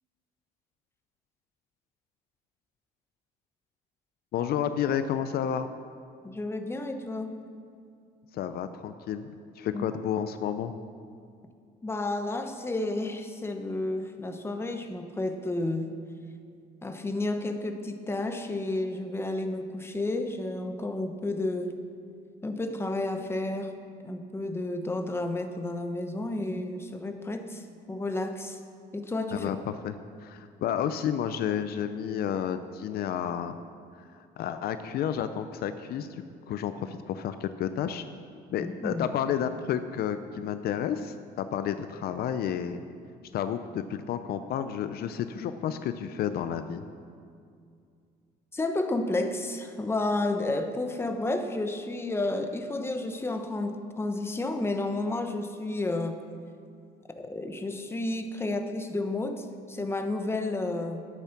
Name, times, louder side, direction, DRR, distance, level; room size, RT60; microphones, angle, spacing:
voice 1, 4.3-5.7 8.3-10.7 29.3-29.9 30.2-33.5 34.0-34.1 34.4-38.0 38.5-42.8 43.3-46.8, left 9 dB, 65° left, 10 dB, 0.6 m, -31 dB
voice 2, 6.2-7.3 9.7-9.9 11.8-15.9 16.8-21.8 22.4-23.7 24.0-28.6 28.9-29.5 38.6-39.1 48.5-56.2 57.2-61.0, left 2 dB, 15° left, 6 dB, 1.0 m, -31 dB
12.5 x 8.4 x 6.0 m, 2.3 s
cardioid pair, 110°, 17 cm